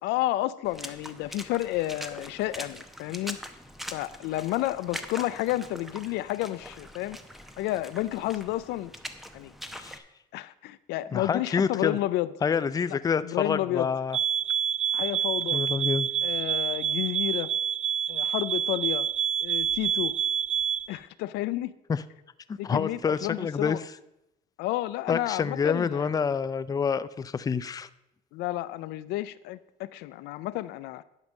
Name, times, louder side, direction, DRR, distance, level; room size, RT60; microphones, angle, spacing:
voice 1, 0.0-3.4 3.9-7.2 7.6-8.9 9.3-9.5 10.3-12.3 12.9-13.9 14.9-15.6 16.2-17.5 18.1-19.1 19.4-20.1 20.9-21.7 22.6-23.8 24.6-26.1 28.3-31.0, left 15 dB, 90° left, 15 dB, 0.4 m, -31 dB
Water / Splash splatter, 0.6-10.0, equal, ahead, 0.8 m, -43 dB
voice 2, 11.1-12.0 12.4-14.2 15.5-16.1 21.9-22.0 22.5-23.8 25.1-27.9, left 6 dB, 20° left, 15 dB, 0.4 m, -27 dB
sound 1, 14.1-20.9, right 8 dB, 40° right, 0.5 m, -27 dB
11.0 x 5.3 x 6.4 m, 0.87 s
cardioid pair, 110°, 17 cm